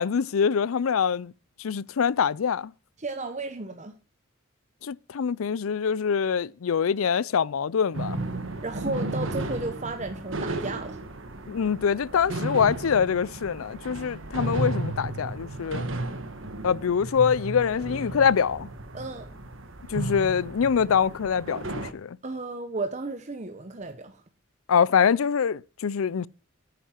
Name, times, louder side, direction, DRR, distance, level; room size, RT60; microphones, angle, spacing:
voice 1, 0.0-1.3 1.6-2.7 4.8-8.2 11.5-15.9 16.6-18.7 19.9-22.2 24.7-26.3, left 7 dB, 85° left, 0.5 m, -24 dB
voice 2, 3.0-3.9 8.6-11.0 18.9-19.3 22.2-24.2, right 3 dB, 35° right, 0.9 m, -33 dB
sound 1, 7.9-21.9, right 2 dB, 70° right, 1.5 m, -34 dB
10.5 x 9.2 x 4.4 m
head